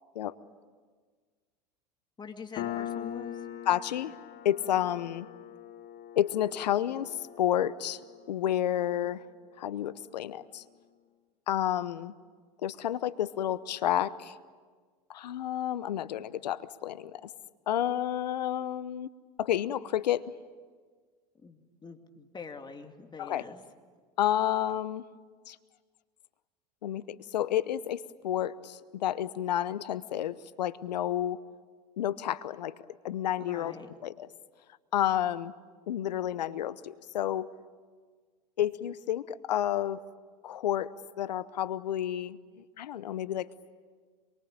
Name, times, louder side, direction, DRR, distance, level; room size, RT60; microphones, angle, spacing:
voice 1, 2.2-3.5 21.3-23.7 33.4-33.9, left 5 dB, 20° left, 5 dB, 2.6 m, -45 dB
Piano, 2.6-9.7, left 11 dB, 50° left, 1.9 m, -42 dB
voice 2, 3.7-4.1 4.4-5.3 6.2-8.0 8.3-9.2 9.6-10.6 11.5-12.1 12.6-14.4 15.1-17.3 17.7-19.1 19.4-20.2 23.2-23.4 24.2-25.0 25.5-25.6 26.8-31.4 32.0-32.7 33.0-33.7 34.0-34.3 34.9-35.5 35.9-37.5 38.6-40.0 40.4-40.9 41.2-42.4 42.8-43.5, left 11 dB, 80° left, 17 dB, 0.9 m, -30 dB
27.0 x 23.0 x 8.8 m, 1.5 s
hypercardioid pair, 85°, 21 cm